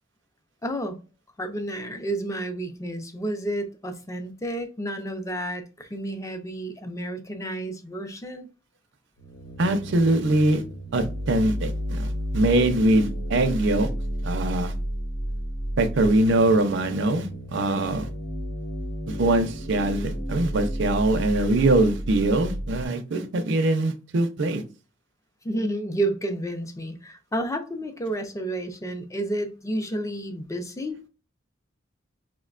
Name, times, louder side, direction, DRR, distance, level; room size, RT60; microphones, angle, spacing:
voice 1, 0.6-1.0 1.4-8.5 25.4-31.0, right 1 dB, 15° left, 0.5 m, -31 dB
sound 1, 9.2-22.9, equal, 55° left, 0.8 m, -32 dB
voice 2, 9.6-10.6 10.9-13.9 14.2-14.7 15.8-18.1 19.1-24.6, right 2 dB, 65° right, 0.5 m, -22 dB
4.8 x 2.1 x 2.4 m
head